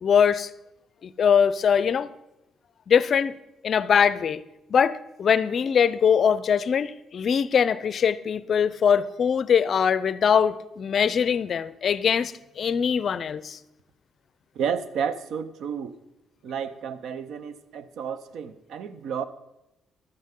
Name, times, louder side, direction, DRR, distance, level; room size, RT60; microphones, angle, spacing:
voice 1, 0.0-0.5 1.0-2.1 2.9-3.4 3.6-4.4 4.7-13.6, left 7 dB, 55° left, 0.4 m, -22 dB
voice 2, 14.5-16.0 16.4-19.2, right 7 dB, 75° right, 0.6 m, -31 dB
12.0 x 9.4 x 3.7 m
cardioid pair, 90°, 0 cm